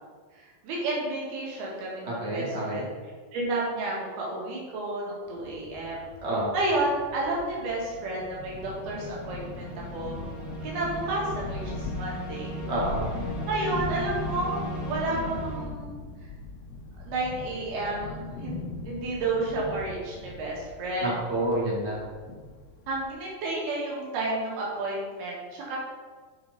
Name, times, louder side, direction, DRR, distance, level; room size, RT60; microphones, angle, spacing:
voice 1, 0.3-2.9 3.3-6.1 6.5-10.2 10.6-12.5 13.4-16.0 17.1-18.6 18.9-21.1 22.9-25.8, right 2 dB, 80° right, -5 dB, 3.9 m, -31 dB
sound 1, 1.5-1.9 7.8-15.6, right 1 dB, 30° left, 1.8 m, -39 dB
voice 2, 2.0-2.8 6.2-6.5 12.7-13.1 21.0-22.0, right 1 dB, 30° right, -5 dB, 1.3 m, -28 dB
sound 2, 5.3-23.1, left 2 dB, 85° left, 1.4 m, -40 dB
7.9 x 4.9 x 5.4 m, 1.5 s
omnidirectional pair, 4.4 m